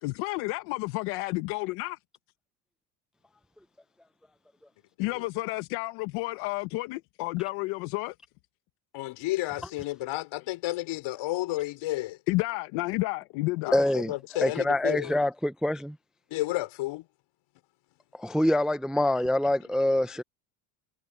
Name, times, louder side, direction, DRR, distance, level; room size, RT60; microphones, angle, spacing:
voice 1, 0.0-2.0 5.0-8.1 12.3-13.8, left 22 dB, 85° left, 1.2 m, -31 dB
voice 2, 8.9-12.2 13.7-15.1 16.3-17.1, left 17 dB, 70° left, 5.3 m, -32 dB
voice 3, 13.7-14.1 14.4-16.0 18.2-20.2, left 1 dB, ahead, 0.5 m, -25 dB
cardioid pair, 120°, 50 cm